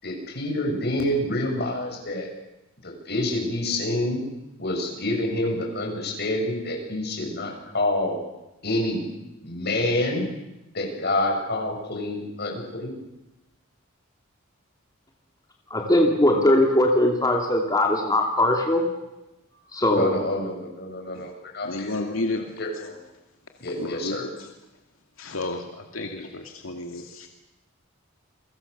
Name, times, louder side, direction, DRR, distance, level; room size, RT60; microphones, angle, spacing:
voice 1, 0.0-2.3 2.8-4.3 4.6-8.2 8.6-9.1 9.4-10.3 10.7-12.9 19.9-22.0 22.6-23.0 23.6-24.3, left 1 dB, 55° left, 1 dB, 6.9 m, -27 dB
voice 2, 15.7-18.8 19.7-20.1, left 1 dB, 20° left, 1 dB, 2.8 m, -20 dB
voice 3, 21.6-22.5 23.8-24.5 25.2-27.3, left 2 dB, 80° left, 3 dB, 2.5 m, -32 dB
29.5 x 23.0 x 6.9 m, 0.98 s
head